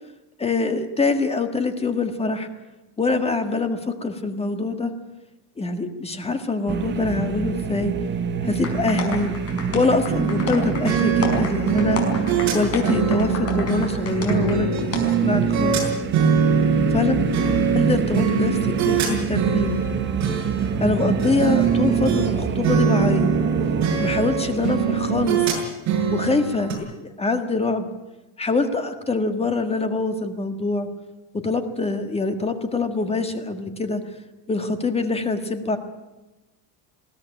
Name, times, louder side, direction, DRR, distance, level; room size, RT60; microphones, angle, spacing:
voice 1, 0.4-2.5 3.0-4.9 5.6-7.9 8.4-9.3 9.7-12.0 12.5-15.8 16.9-17.2 17.7-19.9 20.8-23.3 24.0-25.4 26.1-27.9 28.4-30.9 31.4-34.0 34.5-35.8, left 3 dB, 15° left, 8 dB, 1.7 m, -24 dB
sound 1, 6.7-25.6, right 7 dB, 25° right, 1.2 m, -27 dB
sound 2, 8.6-14.6 14.9-15.0, left 4 dB, 35° left, 5.2 m, -31 dB
sound 3, 10.1-22.3 22.6-26.7, right 6 dB, 40° right, 6.9 m, -23 dB
21.0 x 16.5 x 10.0 m, 1.1 s
cardioid pair, 155°, 41 cm